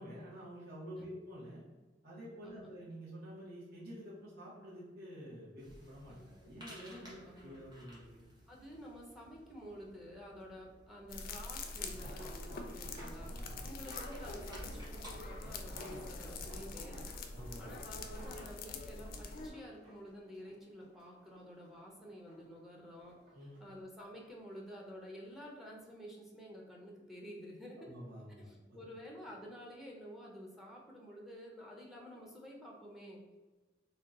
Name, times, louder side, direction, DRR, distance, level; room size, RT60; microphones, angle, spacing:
voice 1, 0.0-1.6 2.0-8.2 13.3-13.6 17.3-17.8 23.3-23.6 27.8-28.8, equal, 60° right, -7 dB, 0.9 m, -49 dB
sound 1, 5.6-15.1, equal, 25° right, 0.9 m, -57 dB
voice 2, 6.8-7.6 8.5-17.0 17.6-23.2 23.6-27.9 28.4-33.2, equal, ahead, -3 dB, 0.5 m, -51 dB
sound 2, 11.1-19.5, left 3 dB, 55° left, 0.3 m, -44 dB
sound 3, 11.7-21.3 21.6-22.6 23.0-24.3 25.1-25.4 25.8-25.9, equal, 40° right, 1.2 m, -55 dB
2.7 x 2.2 x 3.6 m, 1.3 s
head